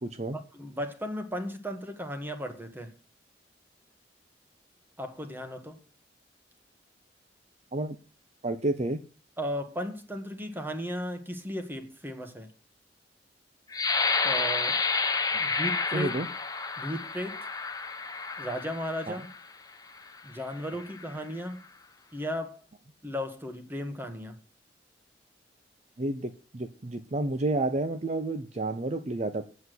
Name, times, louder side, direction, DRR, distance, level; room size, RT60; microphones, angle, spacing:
voice 1, 0.0-0.4 7.7-8.0 8.4-9.0 15.9-16.3 19.1-19.2 26.0-29.4, right 2 dB, 40° right, 0.7 m, -30 dB
voice 2, 0.5-2.9 5.0-5.8 9.4-12.5 14.2-14.8 15.4-16.1 16.8-17.4 18.4-19.3 20.2-21.6 22.1-22.6 23.0-24.4, equal, 10° right, 1.6 m, -35 dB
sound 1, 13.7-19.4 20.0-20.2 20.7-21.1, left 4 dB, 20° left, 0.8 m, -30 dB
8.3 x 7.3 x 7.9 m
head